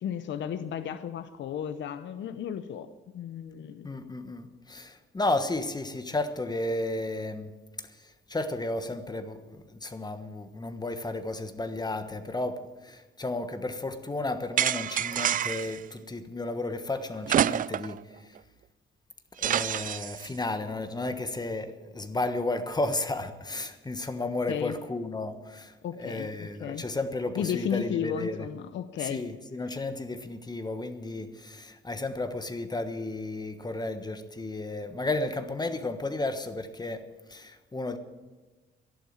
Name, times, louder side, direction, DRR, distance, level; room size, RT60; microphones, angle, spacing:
voice 1, 0.0-3.9 24.5-24.8 25.8-26.8 27.4-29.3, left 8 dB, 70° left, 11 dB, 0.8 m, -34 dB
voice 2, 3.8-7.5 7.8-18.3 19.4-28.5 29.0-38.0, left 2 dB, 20° left, 9 dB, 1.3 m, -33 dB
sound 1, 14.6-15.8 17.3-18.0 18.4-18.5 19.4-20.3, right 10 dB, 45° right, 0.4 m, -27 dB
12.0 x 11.5 x 8.9 m, 1.2 s
cardioid pair, 90°, 20 cm